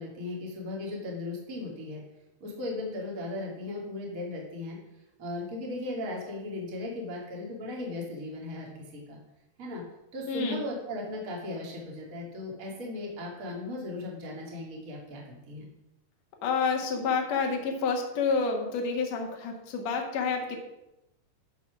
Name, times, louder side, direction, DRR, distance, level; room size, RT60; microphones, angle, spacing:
voice 1, 0.0-2.0 2.4-4.8 5.2-9.2 9.6-9.8 10.1-15.7, left 2 dB, 35° right, -2 dB, 1.5 m, -37 dB
voice 2, 10.3-10.6 16.4-20.6, left 5 dB, 85° left, 1 dB, 1.5 m, -29 dB
13.5 x 4.8 x 6.0 m, 0.93 s
omnidirectional pair, 5.5 m